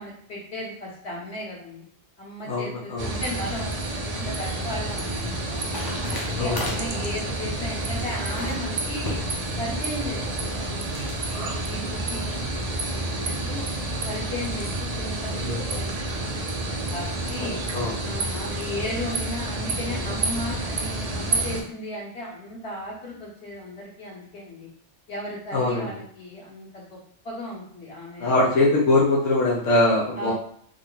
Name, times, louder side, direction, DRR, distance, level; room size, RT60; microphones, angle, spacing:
voice 1, 0.0-1.9 2.2-3.8 4.1-5.7 6.1-9.2 9.6-13.6 14.0-16.4 16.9-17.6 18.0-24.7 25.1-27.0 27.2-28.4 30.2-30.3, left 1 dB, 60° left, -5 dB, 1.6 m, -35 dB
voice 2, 2.5-3.2 6.4-6.6 17.3-18.0 25.5-25.9 28.2-30.3, left 2 dB, 85° left, -4 dB, 1.1 m, -22 dB
sound 1, 3.0-21.6, right 2 dB, 45° right, 0.5 m, -29 dB
sound 2, 4.3-11.2, left 1 dB, 25° left, 0.6 m, -39 dB
3.7 x 2.2 x 3.8 m, 0.62 s
omnidirectional pair, 1.2 m